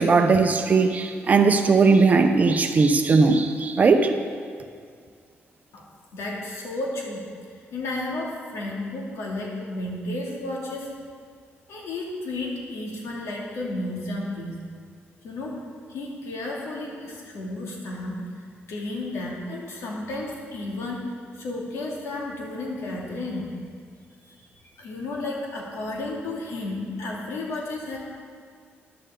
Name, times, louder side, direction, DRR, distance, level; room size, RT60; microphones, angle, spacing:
voice 1, 0.0-4.1, right 4 dB, 35° right, 6 dB, 0.8 m, -18 dB
voice 2, 6.1-7.3 7.7-10.9 11.7-14.6 15.2-15.6 15.9-21.0 21.3-23.5 24.2-28.0, left 2 dB, 90° left, -3 dB, 2.4 m, -32 dB
13.5 x 10.5 x 3.8 m, 2.1 s
wide cardioid pair, 155°, 5 cm